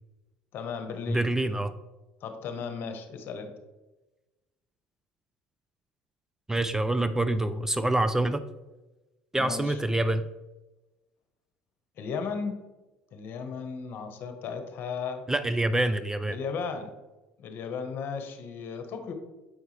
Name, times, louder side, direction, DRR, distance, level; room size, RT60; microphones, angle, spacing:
voice 1, 0.5-1.6 2.2-3.5 9.4-9.8 12.0-12.6 13.1-15.3 16.3-16.9 17.4-19.1, left 5 dB, 55° left, 7 dB, 1.2 m, -35 dB
voice 2, 1.1-1.7 6.5-8.4 9.3-10.3 15.3-16.4, right 1 dB, 10° right, 11 dB, 0.4 m, -26 dB
7.9 x 5.2 x 3.3 m, 1.1 s
supercardioid pair, 85°, 5 cm